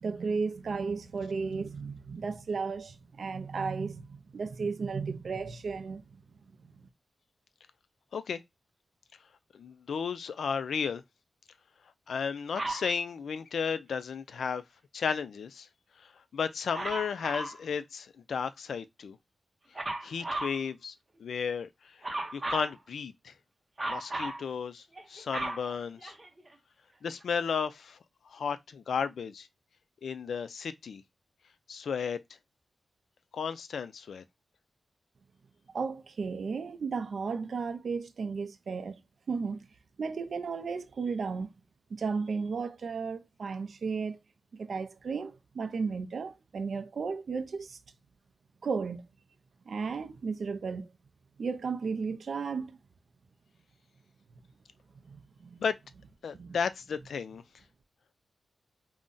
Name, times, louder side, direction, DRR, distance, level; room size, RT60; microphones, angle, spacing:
voice 1, 0.0-6.0 35.7-39.0 39.3-39.6 40.0-41.5 41.9-44.2 44.5-47.8 48.6-49.1 49.7-50.9 51.4-52.7 55.1-55.6 56.3-56.6, right 5 dB, 55° right, 0.4 m, -34 dB
voice 2, 9.5-11.0 12.1-14.6 14.9-15.7 16.3-19.2 20.0-20.9 21.2-22.0 22.3-23.3 23.9-26.1 27.0-28.0 28.3-29.5 30.0-31.0 31.7-32.2 33.3-34.2 55.6-55.8 56.2-57.4, left 6 dB, 80° left, 0.3 m, -33 dB
Dog, 12.6-12.9 16.7-17.6 19.8-20.6 22.0-22.7 23.8-24.4 25.0-26.5 27.2-27.3, right 2 dB, 20° right, 0.6 m, -35 dB
2.5 x 2.1 x 3.7 m
wide cardioid pair, 180°, 0 cm